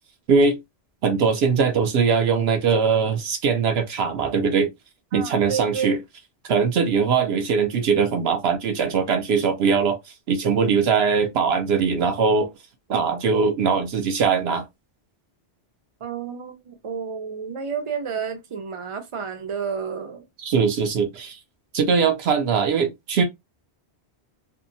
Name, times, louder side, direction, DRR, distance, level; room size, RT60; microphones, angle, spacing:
voice 1, 1.0-4.7 5.1-6.0 6.5-10.0 10.3-12.5 12.9-14.6 20.4-21.4 21.7-23.2, right 5 dB, 70° right, 0.8 m, -21 dB
voice 2, 5.1-6.0 16.0-20.2, right 6 dB, 35° right, 0.5 m, -30 dB
2.7 x 2.1 x 2.6 m
omnidirectional pair, 1.1 m